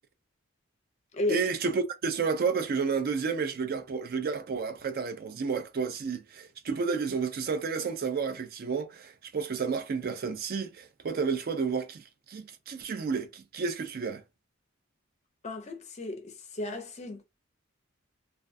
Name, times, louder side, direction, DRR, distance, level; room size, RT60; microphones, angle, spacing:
voice 1, 1.3-14.2, right 5 dB, 45° right, 0.3 m, -31 dB
voice 2, 15.4-17.2, left 2 dB, 30° left, 0.5 m, -34 dB
2.3 x 2.3 x 2.5 m
head